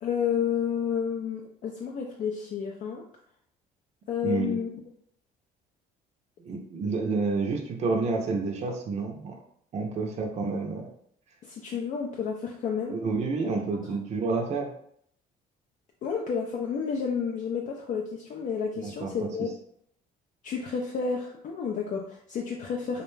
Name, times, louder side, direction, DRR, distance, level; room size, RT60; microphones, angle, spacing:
voice 1, 0.0-3.0 4.1-4.7 11.4-12.9 13.4-13.5 16.0-19.5 20.4-23.0, left 6 dB, 50° left, -1 dB, 0.4 m, -30 dB
voice 2, 4.2-4.6 6.4-9.3 9.7-10.9 12.9-14.7 18.8-19.5, right 4 dB, 40° right, 1 dB, 0.5 m, -29 dB
2.4 x 2.2 x 3.1 m, 0.67 s
cardioid pair, 110°, 17 cm